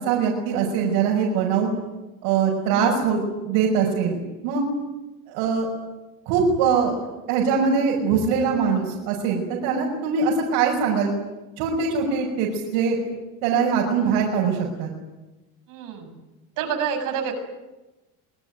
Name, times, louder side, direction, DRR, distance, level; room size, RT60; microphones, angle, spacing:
voice 1, 0.0-1.7 2.2-4.2 4.4-4.6 5.3-5.7 6.3-6.9 7.3-11.1 11.6-13.0 13.4-14.9, right 6 dB, 90° right, -2 dB, 6.0 m, -22 dB
voice 2, 2.7-3.1 15.7-16.1 16.6-17.4, right 7 dB, 65° right, 5 dB, 7.0 m, -28 dB
26.0 x 22.0 x 9.2 m, 1.1 s
cardioid pair, 150°, 34 cm